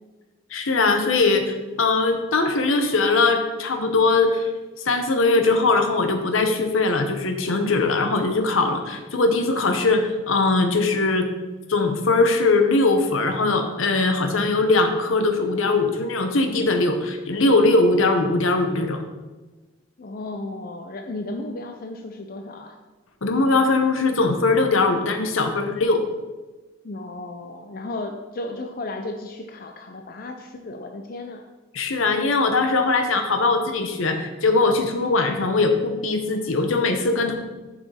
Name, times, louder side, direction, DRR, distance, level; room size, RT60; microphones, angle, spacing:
voice 1, 0.5-4.5 4.8-11.3 11.7-19.0 23.2-26.0 31.7-37.3, left 3 dB, 75° left, 6 dB, 0.8 m, -21 dB
voice 2, 20.0-22.8 26.8-31.4, left 2 dB, 45° left, 4 dB, 0.5 m, -34 dB
7.0 x 5.7 x 4.2 m, 1.2 s
head